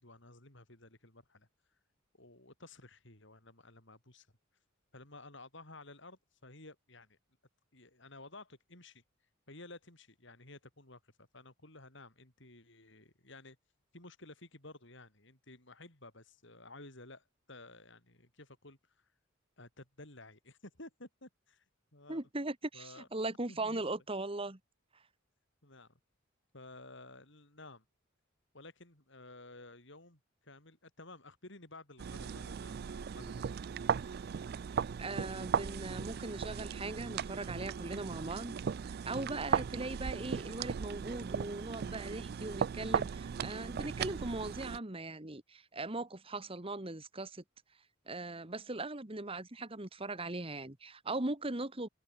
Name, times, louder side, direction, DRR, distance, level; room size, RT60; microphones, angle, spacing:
voice 1, 0.0-1.5 2.1-4.3 4.9-7.2 7.7-9.0 9.5-13.6 13.9-19.1 19.6-21.6 21.9-22.2 22.7-23.1 23.5-23.8 25.6-26.0 26.5-27.8 28.5-33.7, left 2 dB, 60° left, 5.8 m, -54 dB
voice 2, 22.1-24.6 35.0-38.6 39.1-47.4 48.1-51.9, right 2 dB, 25° right, 1.7 m, -39 dB
sound 1, 32.0-44.8, right 7 dB, 50° right, 0.3 m, -37 dB
open air
head